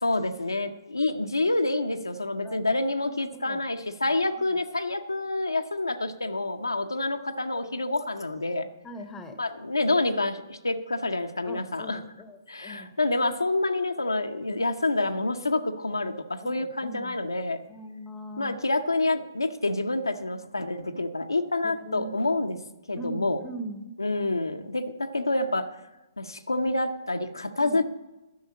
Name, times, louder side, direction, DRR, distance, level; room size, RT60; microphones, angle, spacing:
voice 1, 0.0-8.7 9.4-12.0 12.5-17.6 18.4-22.6 22.9-23.4 24.0-25.7 26.2-27.8, left 2 dB, 90° left, 6 dB, 0.8 m, -27 dB
voice 2, 3.3-3.6 8.8-9.4 11.4-12.9 16.4-17.2 17.7-18.6 21.6-22.1 23.0-23.9 27.6-27.8, right 1 dB, 10° left, 10 dB, 1.0 m, -40 dB
10.5 x 6.4 x 8.3 m, 1.0 s
figure-of-eight pair, 130°, 2 cm